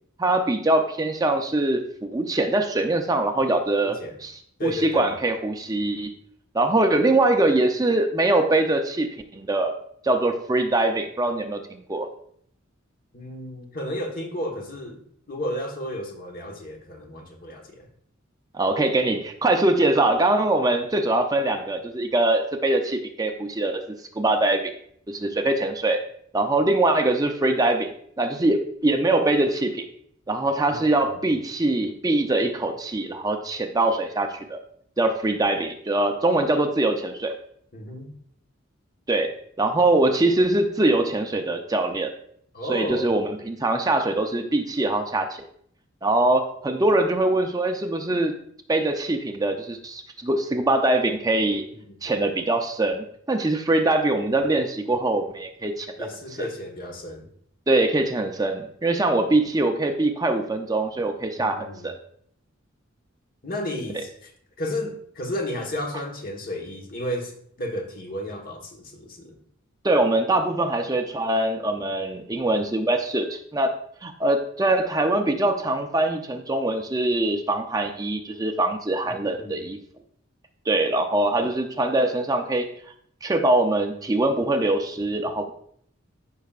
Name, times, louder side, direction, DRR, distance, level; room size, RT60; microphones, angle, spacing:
voice 1, 0.2-6.1 6.5-9.7 10.0-11.6 11.9-12.1 18.5-23.8 24.2-24.7 25.1-26.0 26.3-27.9 28.2-29.8 30.3-34.6 35.0-37.4 39.1-39.3 39.6-42.1 42.7-45.5 46.0-48.4 48.7-51.6 52.0-56.1 56.4-56.5 57.7-61.9 69.8-73.7 74.0-79.8 80.7-82.7 83.2-85.5, right 2 dB, 20° right, 5 dB, 0.5 m, -23 dB
voice 2, 3.8-4.2 4.6-5.1 13.1-15.0 15.3-17.9 30.7-30.8 37.7-38.1 42.5-43.1 51.9-52.0 56.0-57.3 61.3-61.9 63.4-64.3 64.6-67.3 67.6-69.4 79.0-79.6, equal, 45° left, 2 dB, 1.3 m, -33 dB
14.0 x 5.6 x 2.4 m, 0.66 s
head